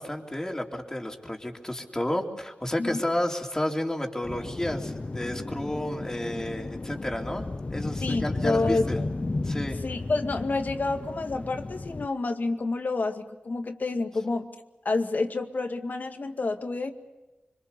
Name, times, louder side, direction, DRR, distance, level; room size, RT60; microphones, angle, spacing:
voice 1, 0.0-9.0 9.4-9.8, left 1 dB, 20° left, 1 dB, 3.6 m, -31 dB
sound 1, 4.2-12.1, left 2 dB, 40° left, 0.8 m, -34 dB
voice 2, 8.0-9.1 9.8-14.5 14.8-16.9, left 3 dB, 60° left, 6 dB, 2.1 m, -29 dB
25.5 x 25.5 x 6.9 m, 1.0 s
wide cardioid pair, 70°, 3 cm